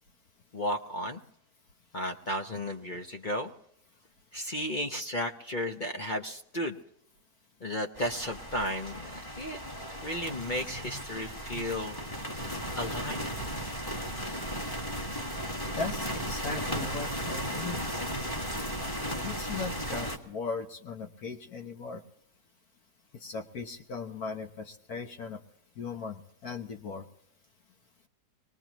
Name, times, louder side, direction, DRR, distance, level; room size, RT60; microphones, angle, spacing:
voice 1, 0.5-1.2 1.9-3.5 4.3-6.8 7.6-9.1 9.4-9.6 9.9-12.0 12.8-13.3, left 1 dB, 40° left, 4 dB, 0.7 m, -34 dB
sound 1, 8.0-20.2, equal, 15° left, 1.5 m, -35 dB
voice 2, 15.8-17.8 19.2-22.0 23.1-25.4 25.8-27.1, left 4 dB, 60° left, 3 dB, 1.5 m, -38 dB
24.0 x 20.0 x 3.0 m, 0.77 s
omnidirectional pair, 1.9 m